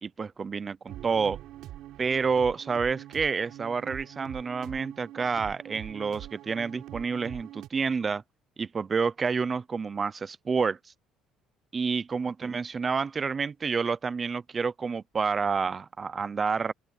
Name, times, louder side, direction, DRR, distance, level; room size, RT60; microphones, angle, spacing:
voice 1, 0.0-1.4 2.0-8.2 8.6-10.8 11.7-16.7, right 5 dB, 25° right, 0.6 m, -29 dB
sound 1, 0.9-7.7, right 13 dB, 65° right, 4.1 m, -44 dB
open air
cardioid pair, 145°, 0 cm